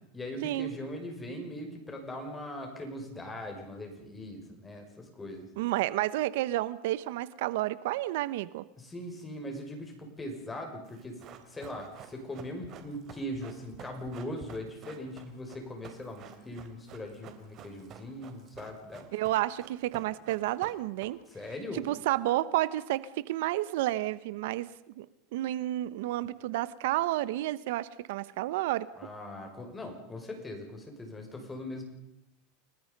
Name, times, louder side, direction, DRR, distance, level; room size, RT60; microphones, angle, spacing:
voice 1, 0.1-5.5 8.8-11.2 11.5-19.1 21.3-21.9 29.0-31.8, left 1 dB, 15° left, 3 dB, 6.0 m, -40 dB
voice 2, 5.6-8.6 19.1-21.2 21.8-24.7 25.0-25.1 25.3-28.9, right 15 dB, 75° right, 17 dB, 1.0 m, -30 dB
Run, 10.8-21.5 21.7-21.8, right 9 dB, 40° right, 3.5 m, -50 dB
30.0 x 19.5 x 5.4 m, 0.87 s
supercardioid pair, 140°, 0 cm